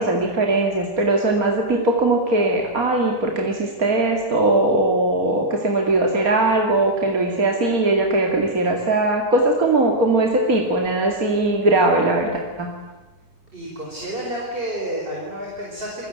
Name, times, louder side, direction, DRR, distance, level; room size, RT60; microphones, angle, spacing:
voice 1, 0.0-12.7, right 2 dB, 65° right, 1 dB, 3.0 m, -20 dB
voice 2, 13.5-16.1, right 1 dB, 35° right, -2 dB, 5.5 m, -30 dB
28.0 x 22.5 x 9.3 m, 1.1 s
omnidirectional pair, 1.6 m